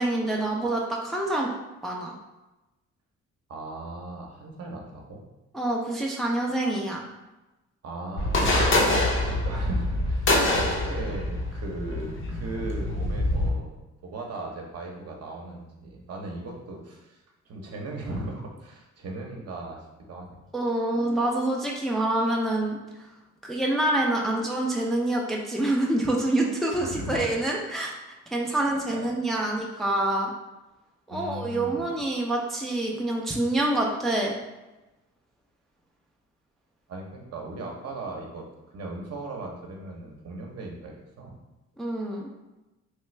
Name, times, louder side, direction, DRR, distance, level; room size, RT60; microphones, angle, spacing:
voice 1, 0.0-1.5 1.8-2.1 5.5-7.0 20.5-22.8 23.4-27.9 28.3-30.3 31.1-34.3 41.8-42.3, right 1 dB, ahead, -2 dB, 0.5 m, -26 dB
voice 2, 3.5-5.2 7.8-20.4 26.8-27.3 28.7-29.1 29.6-29.8 31.1-31.8 36.9-38.5 38.7-41.4, right 2 dB, 55° right, 0 dB, 0.8 m, -38 dB
sound 1, 8.2-13.5, left 1 dB, 40° left, 0.7 m, -25 dB
3.2 x 2.4 x 3.2 m, 1.0 s
cardioid pair, 90°, 30 cm